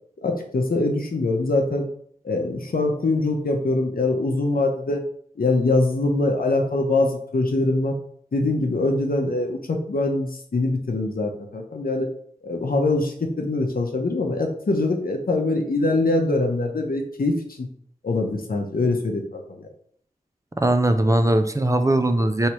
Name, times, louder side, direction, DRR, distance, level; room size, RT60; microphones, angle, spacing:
voice 1, 0.2-1.9 2.2-5.0 5.4-8.0 8.3-12.1 12.4-17.7 18.0-19.7, left 2 dB, 85° left, 2 dB, 0.7 m, -23 dB
voice 2, 20.6-22.5, right 1 dB, 20° right, 8 dB, 0.4 m, -20 dB
4.6 x 3.2 x 2.9 m, 0.62 s
wide cardioid pair, 50°, 15 cm